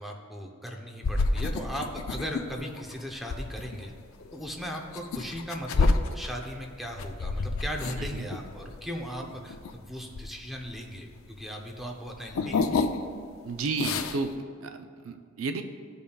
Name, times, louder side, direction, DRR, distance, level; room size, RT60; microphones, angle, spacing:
voice 1, 0.0-3.9 4.3-11.1 11.4-12.7, equal, ahead, 0 dB, 0.7 m, -37 dB
sound 1, 1.0-11.4 11.7-13.3 13.5-14.3, left 3 dB, 75° left, 0.5 m, -30 dB
voice 2, 13.4-15.6, right 3 dB, 70° right, 7 dB, 0.5 m, -32 dB
14.0 x 5.3 x 2.3 m, 2.2 s
head